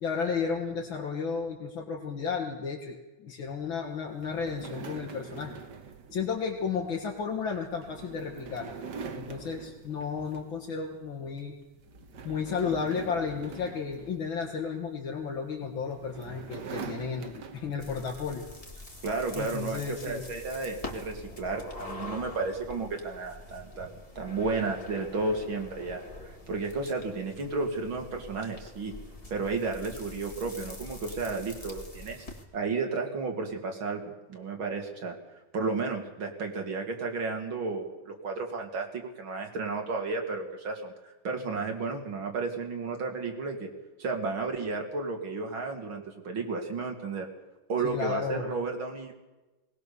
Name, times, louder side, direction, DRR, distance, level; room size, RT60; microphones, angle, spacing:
voice 1, 0.0-5.5 6.1-8.7 9.1-11.5 12.2-18.5 19.3-20.3 47.8-48.5, left 5 dB, 75° left, -1 dB, 2.5 m, -33 dB
sound 1, 4.2-10.7 11.1-11.4 11.8-14.8 15.6-18.1, right 5 dB, 60° right, 1.9 m, -44 dB
sound 2, 17.8-32.4, left 2 dB, 15° left, 2.3 m, -44 dB
voice 2, 19.0-28.9 29.3-32.3 32.5-34.0 34.3-35.1 35.5-43.7 44.0-47.3 47.7-49.1, right 3 dB, 80° right, 2 dB, 3.2 m, -33 dB
20.0 x 19.5 x 6.9 m, 1.1 s
omnidirectional pair, 2.2 m